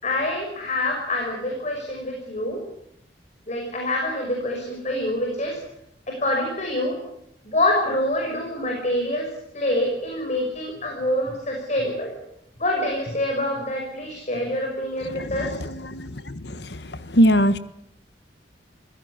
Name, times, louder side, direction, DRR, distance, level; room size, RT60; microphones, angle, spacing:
voice 1, 0.0-2.6 3.5-5.6 6.1-7.0 7.4-9.3 9.5-12.1 12.6-15.6, left 1 dB, 40° left, 1 dB, 5.8 m, -26 dB
voice 2, 15.1-16.8 17.1-17.6, equal, 65° left, 14 dB, 1.6 m, -22 dB
28.5 x 17.0 x 9.7 m, 0.78 s
head